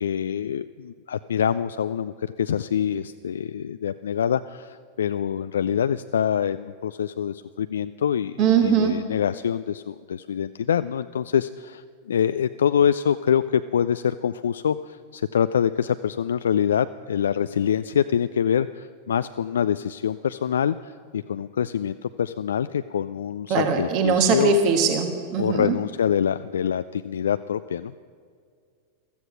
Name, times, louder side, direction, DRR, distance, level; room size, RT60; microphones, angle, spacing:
voice 1, 0.0-24.6 25.4-27.9, left 8 dB, 65° left, 13 dB, 0.3 m, -25 dB
voice 2, 8.4-8.9 23.5-25.8, right 6 dB, 40° right, 6 dB, 1.4 m, -21 dB
15.5 x 14.0 x 6.1 m, 2.1 s
figure-of-eight pair, 90°, 0 cm